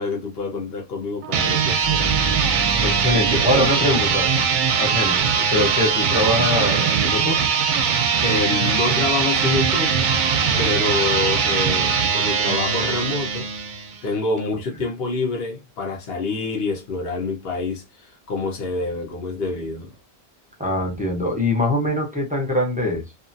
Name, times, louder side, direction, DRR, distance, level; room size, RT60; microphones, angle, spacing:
voice 1, 0.0-2.2 2.8-3.8 4.4-4.7 8.2-9.9 10.6-13.5 14.0-20.0, left 3 dB, 70° left, 1.1 m, -27 dB
sound 1, 1.2-14.0, right 6 dB, 60° right, 0.6 m, -21 dB
sound 2, 1.8-5.5, right 1 dB, 10° left, 1.1 m, -32 dB
voice 2, 2.8-4.4 4.8-7.4 20.6-23.0, left 1 dB, 10° right, 0.6 m, -23 dB
2.7 x 2.5 x 2.6 m
omnidirectional pair, 1.1 m